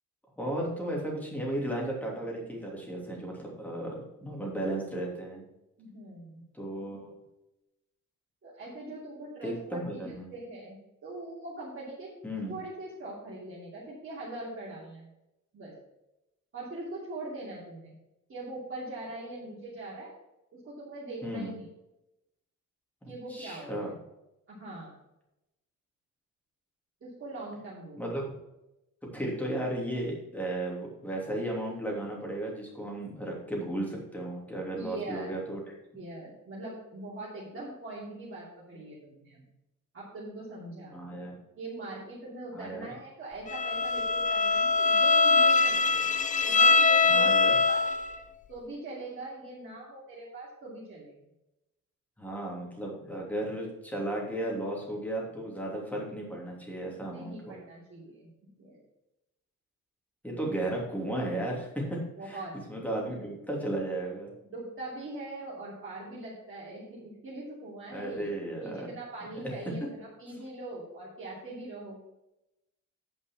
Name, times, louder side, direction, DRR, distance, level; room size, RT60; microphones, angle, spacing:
voice 1, 0.4-5.4 6.5-7.1 9.4-10.3 12.2-12.6 21.2-21.6 23.3-23.9 28.0-28.3 29.0-35.6 40.9-41.3 42.5-42.9 47.0-47.5 52.2-57.6 60.2-62.0 62.2-62.4 62.7-64.3 67.9-68.9 69.7-69.8, right 1 dB, 5° left, -2 dB, 2.9 m, -34 dB
voice 2, 5.8-6.4 8.4-12.1 12.5-15.1 15.5-15.7 16.5-18.0 18.3-20.1 20.5-21.7 23.1-23.9 24.5-25.0 27.0-28.3 34.8-35.4 35.9-39.4 39.9-41.0 41.6-46.1 46.4-47.9 48.5-51.2 56.9-58.8 62.2-62.5 64.5-68.3 68.6-72.0, right 2 dB, 40° right, -7 dB, 2.8 m, -42 dB
Bowed string instrument, 43.5-48.2, left 4 dB, 25° left, 0.5 m, -23 dB
9.2 x 5.3 x 6.0 m, 0.91 s
wide cardioid pair, 145°, 31 cm